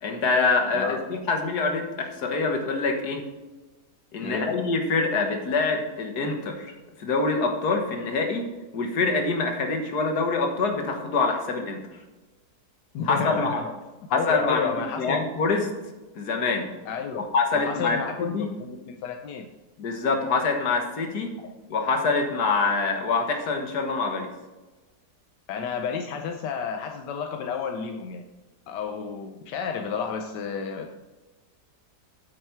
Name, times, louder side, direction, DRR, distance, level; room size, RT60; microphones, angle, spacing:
voice 1, 0.0-3.3 4.1-6.7 7.0-8.5 8.7-11.8 13.0-13.6 14.1-14.6 15.0-15.7 16.2-16.7 17.1-18.0 18.3-18.5 19.8-21.3 21.7-24.3, left 4 dB, 70° left, 4 dB, 1.9 m, -25 dB
voice 2, 12.9-13.7 14.1-15.2 16.9-17.3 17.5-19.5 25.5-28.2 28.7-30.9, left 6 dB, 90° left, 4 dB, 1.4 m, -31 dB
9.0 x 7.6 x 4.5 m, 1.2 s
omnidirectional pair, 1.8 m